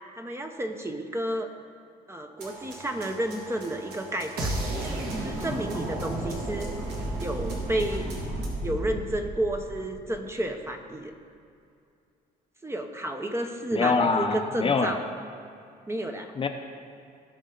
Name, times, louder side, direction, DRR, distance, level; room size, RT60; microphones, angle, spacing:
voice 1, 0.1-1.5 2.1-4.5 5.2-6.7 7.2-8.1 8.6-11.1 12.6-15.0 15.9-16.3, right 1 dB, 15° right, 4 dB, 0.9 m, -31 dB
sound 1, 2.4-8.5, right 3 dB, 80° right, 2.5 m, -44 dB
sound 2, 4.4-10.3, right 1 dB, 60° right, 2.1 m, -32 dB
voice 2, 13.7-15.0 16.4-16.5, left 4 dB, 30° left, 5 dB, 0.8 m, -24 dB
17.5 x 6.2 x 3.9 m, 2.5 s
cardioid pair, 110°, 17 cm